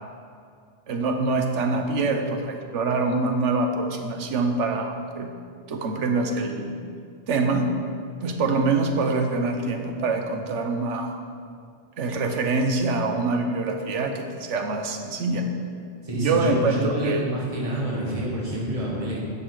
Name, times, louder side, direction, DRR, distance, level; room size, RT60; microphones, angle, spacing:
voice 1, 0.9-5.3 5.7-6.8 7.3-7.7 8.2-11.2 12.0-15.5 16.1-17.2, right 3 dB, 90° right, 5 dB, 1.1 m, -25 dB
voice 2, 16.0-19.2, right 1 dB, 30° right, -5 dB, 1.7 m, -28 dB
9.7 x 5.9 x 4.8 m, 2.3 s
omnidirectional pair, 1.2 m